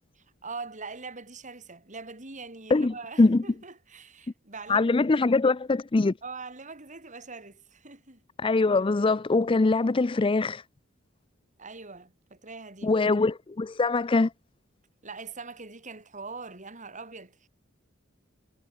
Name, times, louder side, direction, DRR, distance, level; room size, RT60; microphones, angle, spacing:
voice 1, 0.4-4.9 5.2-5.3 6.2-8.2 11.6-13.0 15.0-17.5, right 4 dB, 40° right, 5.2 m, -42 dB
voice 2, 2.7-3.4 4.7-6.1 8.4-10.6 12.8-14.3, left 3 dB, 25° left, 0.4 m, -23 dB
head